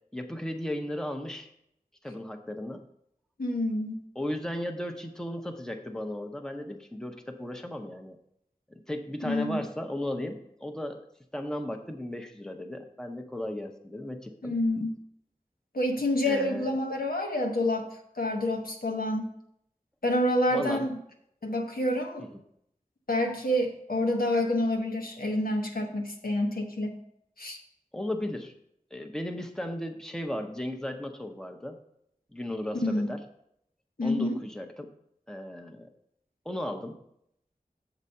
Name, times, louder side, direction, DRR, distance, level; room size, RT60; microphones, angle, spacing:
voice 1, 0.1-1.5 2.0-2.9 4.1-8.2 8.7-11.1 11.3-14.5 16.2-16.7 20.5-20.9 27.9-28.5 28.9-31.8 32.3-33.2 34.0-34.9 35.3-35.9 36.4-37.0, left 1 dB, 5° left, 5 dB, 0.8 m, -35 dB
voice 2, 3.4-4.0 9.2-9.7 14.4-14.9 15.7-17.9 18.1-19.3 20.0-21.0 21.4-22.3 23.1-27.0 27.4-27.6 32.8-33.1 34.0-34.4, left 1 dB, 85° left, 1 dB, 1.1 m, -28 dB
7.4 x 4.1 x 6.7 m, 0.73 s
wide cardioid pair, 40°, 15 cm